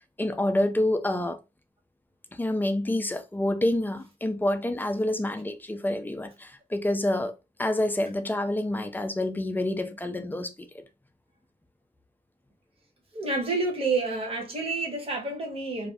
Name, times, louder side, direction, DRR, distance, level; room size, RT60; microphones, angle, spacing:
voice 1, 0.2-1.4 2.3-7.3 7.6-10.8, left 1 dB, 10° left, 0.3 m, -27 dB
voice 2, 13.1-15.9, right 3 dB, 35° right, 1.0 m, -29 dB
2.5 x 2.5 x 3.3 m
wide cardioid pair, 175°, 16 cm